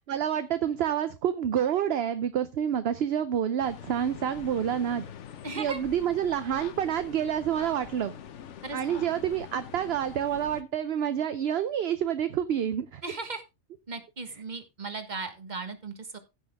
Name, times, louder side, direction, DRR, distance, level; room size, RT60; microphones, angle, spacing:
voice 1, 0.1-5.0 5.5-8.1 8.7-13.0, right 9 dB, 60° right, 12 dB, 0.9 m, -28 dB
sound 1, 3.6-10.6, left 9 dB, 70° left, 1.1 m, -44 dB
voice 2, 5.4-5.8 8.6-9.0 13.0-13.4 13.9-16.2, right 4 dB, 35° right, 8 dB, 1.6 m, -37 dB
15.0 x 6.2 x 3.5 m, 0.25 s
omnidirectional pair, 1.3 m